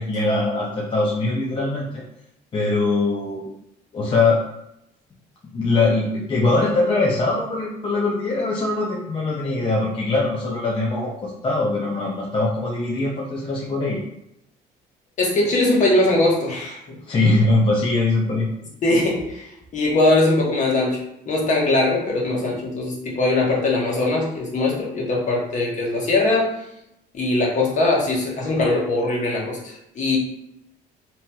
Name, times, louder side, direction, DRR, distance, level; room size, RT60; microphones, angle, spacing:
voice 1, 0.0-2.0 2.5-3.5 3.9-4.4 5.5-14.0 17.1-18.5, left 2 dB, 30° left, -3 dB, 0.5 m, -22 dB
voice 2, 15.2-16.8 18.8-19.4 19.7-21.0 21.3-26.5 27.1-30.2, left 2 dB, 45° left, -2 dB, 0.9 m, -21 dB
2.8 x 2.8 x 2.2 m, 0.81 s
cardioid pair, 110°, 17 cm